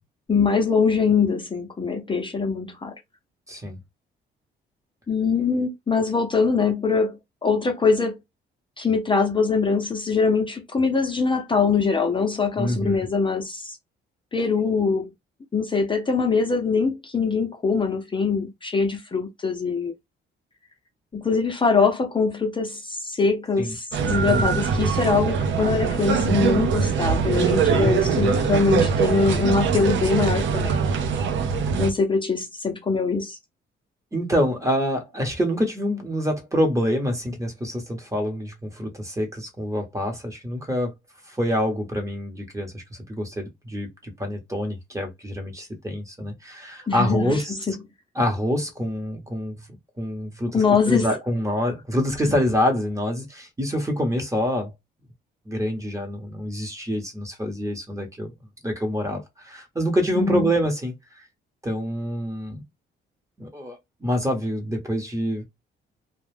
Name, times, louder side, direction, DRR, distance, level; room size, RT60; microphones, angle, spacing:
voice 1, 0.3-2.9 5.1-8.2 8.8-13.8 14.3-15.1 15.5-19.9 21.1-30.7 31.8-33.4 46.9-47.7 50.5-51.1 60.1-60.5, left 4 dB, 25° left, 0.7 m, -23 dB
voice 2, 3.5-3.8 12.6-13.0 23.6-23.7 24.2-24.4 27.7-28.0 34.1-40.9 41.3-47.6 48.1-49.6 50.0-54.7 55.5-58.3 58.6-61.2 61.6-62.6 63.4-65.4, equal, 15° right, 1.0 m, -26 dB
sound 1, 23.9-31.9, right 6 dB, 70° right, 0.6 m, -22 dB
2.4 x 2.2 x 3.3 m
cardioid pair, 90°, 20 cm